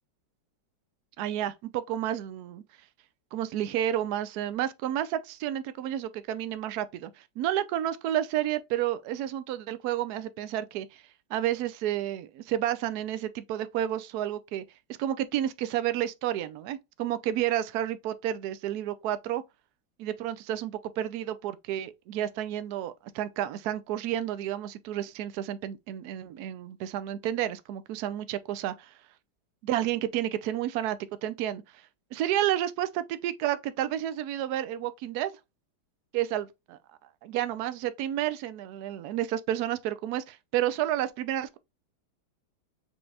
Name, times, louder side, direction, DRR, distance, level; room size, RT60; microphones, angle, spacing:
voice 1, 1.2-2.6 3.3-11.0 11.3-14.6 15.0-19.4 20.0-28.7 29.6-31.6 32.1-35.3 36.1-36.8 37.2-41.6, right 12 dB, 70° right, 0.9 m, -31 dB
6.9 x 3.2 x 2.4 m
omnidirectional pair, 2.2 m